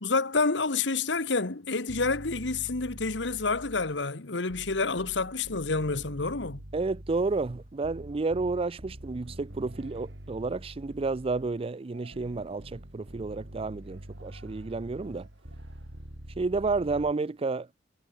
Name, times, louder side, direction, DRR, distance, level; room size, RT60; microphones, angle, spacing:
voice 1, 0.0-6.6, left 3 dB, 70° left, 1.5 m, -28 dB
sound 1, 1.9-4.0 4.5-11.6 12.1-17.1, equal, 70° right, 4.1 m, -45 dB
voice 2, 6.7-15.3 16.4-17.7, right 3 dB, 30° right, 0.4 m, -31 dB
Yell, 9.2-16.9, right 3 dB, 85° right, 7.8 m, -63 dB
head